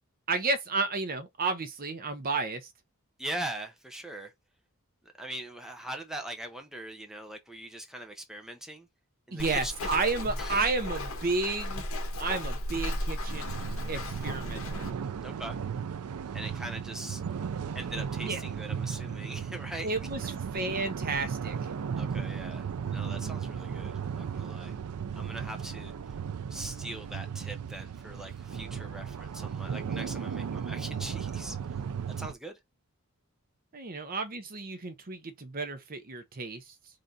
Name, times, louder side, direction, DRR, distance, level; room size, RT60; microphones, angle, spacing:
voice 1, 0.3-2.7 9.3-11.8 12.2-14.9 18.2-18.4 19.8-20.2 20.5-21.7 33.7-36.7, right 3 dB, 40° right, 0.8 m, -32 dB
voice 2, 3.2-4.3 5.0-8.9 9.3-9.9 10.4-10.6 15.2-15.6 16.3-17.2 17.7-19.9 22.0-24.8 25.1-26.2 26.5-31.8 32.2-32.6, right 1 dB, ahead, 0.7 m, -41 dB
Walk footsteps, 9.4-14.9, left 1 dB, 65° left, 1.4 m, -35 dB
sound 1, 13.3-32.3, right 7 dB, 80° right, 0.4 m, -36 dB
3.8 x 3.2 x 4.1 m
head